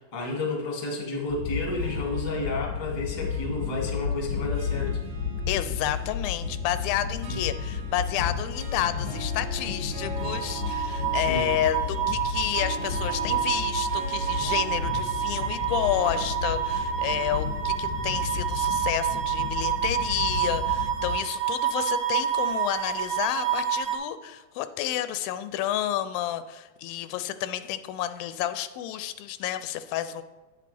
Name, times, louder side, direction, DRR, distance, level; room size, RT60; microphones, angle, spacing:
voice 1, 0.0-5.0 7.3-7.4 11.1-11.5, left 2 dB, 20° left, -2 dB, 1.2 m, -31 dB
sound 1, 1.3-21.1, left 6 dB, 45° left, 1.1 m, -32 dB
Harp, 1.7-20.2, right 5 dB, 60° right, 2.0 m, -44 dB
voice 2, 5.5-30.2, left 12 dB, 85° left, 12 dB, 2.3 m, -30 dB
sound 2, 10.2-24.0, right 10 dB, 75° right, 2.6 m, -29 dB
9.3 x 8.4 x 3.4 m, 1.2 s
omnidirectional pair, 4.1 m